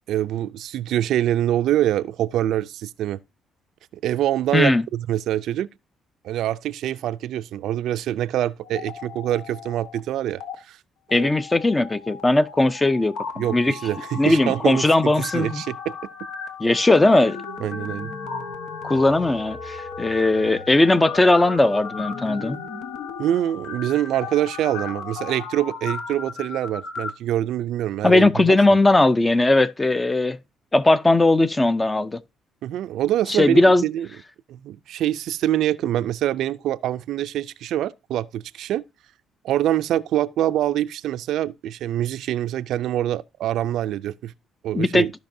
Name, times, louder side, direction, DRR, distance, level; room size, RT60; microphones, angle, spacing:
voice 1, 0.1-3.2 3.9-5.7 6.2-10.8 11.1-11.3 13.4-15.9 17.6-18.1 23.2-28.6 32.6-34.1 34.5-38.8 39.4-44.3 44.6-45.1, right 12 dB, 75° right, 0.4 m, -25 dB
sound 1, 8.6-10.0 10.3-10.5 11.1-27.1, left 5 dB, 80° left, 1.1 m, -35 dB
voice 2, 11.1-13.2 13.5-13.7 14.2-15.6 16.6-17.4 18.8-22.6 28.0-30.4 30.7-32.2 33.3-33.8 44.7-45.1, left 2 dB, 15° left, 0.5 m, -18 dB
14.5 x 5.3 x 2.6 m
cardioid pair, 95°, 0 cm